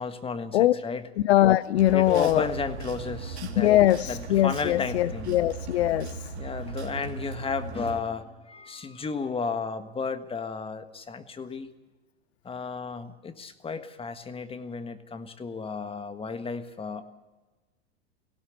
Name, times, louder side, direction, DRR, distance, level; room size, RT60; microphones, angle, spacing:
voice 1, 0.0-1.0 1.9-3.7 4.1-5.4 6.3-11.7 12.4-17.0, left 5 dB, 15° left, 10 dB, 1.5 m, -33 dB
voice 2, 1.2-2.4 3.6-6.3, left 14 dB, 75° left, 17 dB, 0.7 m, -22 dB
sound 1, 1.7-8.0, right 4 dB, 85° right, 3.1 m, -38 dB
19.0 x 17.0 x 8.1 m, 1.2 s
hypercardioid pair, 100°, 33 cm